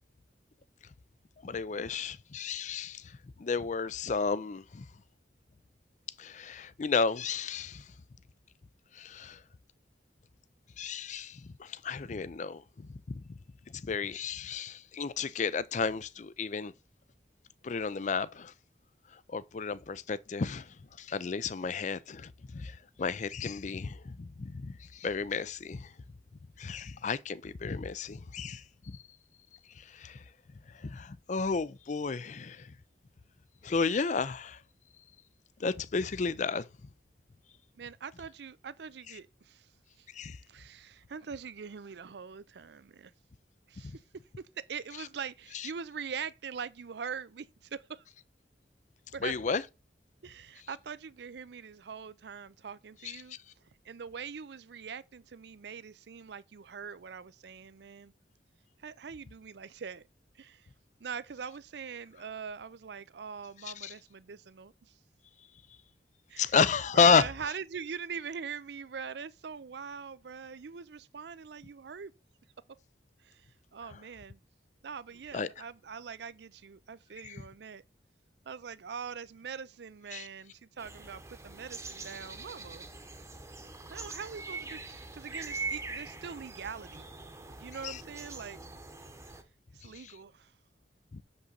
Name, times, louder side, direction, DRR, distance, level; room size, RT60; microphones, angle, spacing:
voice 1, 1.4-4.9 6.2-7.8 8.9-9.4 10.8-13.2 13.7-16.7 17.6-18.5 19.3-25.9 26.6-29.0 29.8-30.2 30.8-32.7 33.6-34.6 35.6-36.7 40.1-40.4 45.5-45.7 49.2-49.6 53.0-53.4 63.6-63.9 66.4-67.3 75.3-75.5 77.2-77.4 80.1-80.3 87.8-88.0 90.0-90.1 91.1-91.2, left 5 dB, 40° left, 0.4 m, -32 dB
voice 2, 37.8-39.7 40.0-40.1 40.5-43.1 43.7-48.0 49.1-49.5 50.2-53.4 53.8-58.1 58.8-60.0 60.3-60.7 61.0-64.9 66.3-66.6 66.9-72.1 72.7-72.8 73.2-74.4 74.8-77.8 78.5-82.9 83.9-87.0 87.6-88.6 89.7-90.5, right 6 dB, 65° right, 0.5 m, -43 dB
sound 1, 80.8-89.4, right 3 dB, 15° right, 1.0 m, -43 dB
7.0 x 5.5 x 3.9 m
head